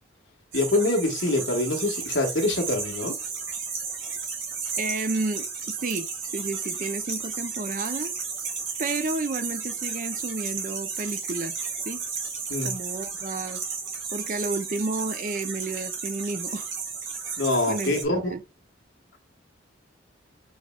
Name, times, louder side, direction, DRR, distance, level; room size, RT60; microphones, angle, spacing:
voice 1, 0.5-3.1 12.5-12.7 17.4-18.3, left 2 dB, 70° left, 1.4 m, -25 dB
sound 1, 0.5-18.0, right 5 dB, 85° right, 1.7 m, -33 dB
voice 2, 4.8-6.1 6.3-8.1 8.8-11.6 11.9-12.0 12.6-13.7 14.1-16.7 17.7-18.4, right 3 dB, 45° right, 0.5 m, -31 dB
6.3 x 3.1 x 2.3 m
head